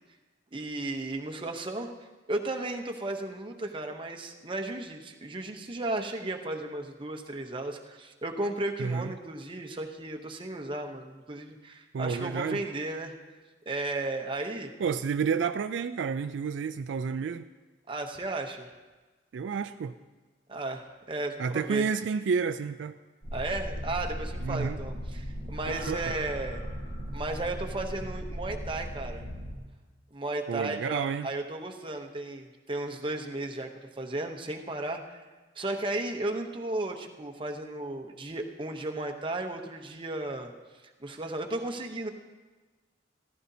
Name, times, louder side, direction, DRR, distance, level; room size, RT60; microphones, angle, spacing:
voice 1, 0.5-1.9 2.3-13.1 13.7-14.7 17.9-18.7 20.5-21.9 23.3-26.6 27.1-29.2 30.1-33.7 34.0-35.2 35.6-40.5 41.0-42.1, right 2 dB, 25° right, 4 dB, 0.8 m, -34 dB
voice 2, 8.8-9.1 11.9-12.6 14.8-17.4 19.3-19.9 21.4-23.0 24.4-24.8 25.7-26.1 30.5-31.3, right 6 dB, 70° right, 10 dB, 0.3 m, -30 dB
sound 1, 23.2-29.6, equal, 65° left, 4.6 m, -37 dB
15.0 x 14.5 x 2.8 m, 1.3 s
head